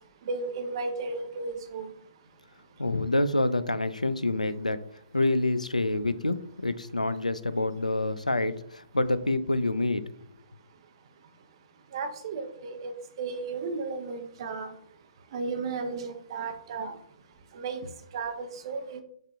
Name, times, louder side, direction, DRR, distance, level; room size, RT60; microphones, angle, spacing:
voice 1, 0.3-1.9 11.9-14.7 15.3-16.9 17.5-17.8 18.1-19.0, right 4 dB, 45° right, 6 dB, 0.7 m, -34 dB
voice 2, 2.8-4.8 5.1-6.4 6.6-10.0, left 2 dB, 90° left, 13 dB, 0.3 m, -27 dB
5.1 x 2.5 x 3.5 m, 0.65 s
figure-of-eight pair, 125°, 4 cm